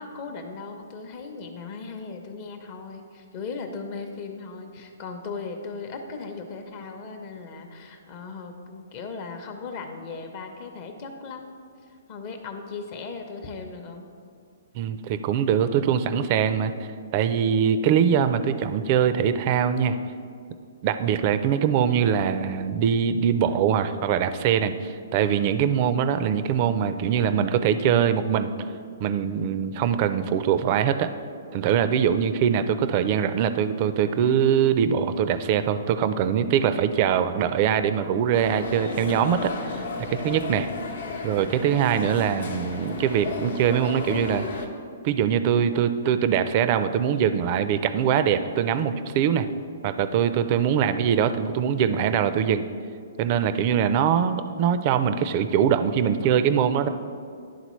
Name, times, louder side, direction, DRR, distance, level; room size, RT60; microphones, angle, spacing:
voice 1, 0.0-14.1, left 4 dB, 45° left, 4 dB, 0.7 m, -37 dB
voice 2, 14.7-16.7 17.1-20.0 20.8-28.5 29.0-31.1 31.5-39.5 40.0-40.7 41.2-44.4 45.0-49.5 49.8-52.6 53.2-56.9, right 8 dB, 40° right, 11 dB, 0.4 m, -22 dB
sound 1, 38.3-44.7, left 4 dB, 70° left, 0.8 m, -34 dB
11.0 x 3.8 x 3.1 m, 2.3 s
hypercardioid pair, 135°, 0 cm